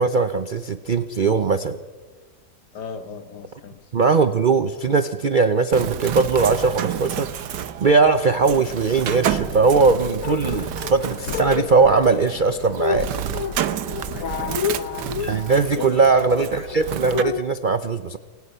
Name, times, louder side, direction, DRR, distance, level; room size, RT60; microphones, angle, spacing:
voice 1, 0.0-1.8 3.9-13.1 15.2-18.2, right 4 dB, 55° right, 11 dB, 0.5 m, -20 dB
voice 2, 2.7-3.8 14.1-14.9 15.8-16.1, left 6 dB, 80° left, 10 dB, 1.9 m, -37 dB
Bird, 5.7-17.2, right 9 dB, 85° right, 1.5 m, -30 dB
sound 1, 10.2-17.4, left 8 dB, 60° left, 1.2 m, -30 dB
29.0 x 17.0 x 5.6 m, 1.3 s
omnidirectional pair, 1.8 m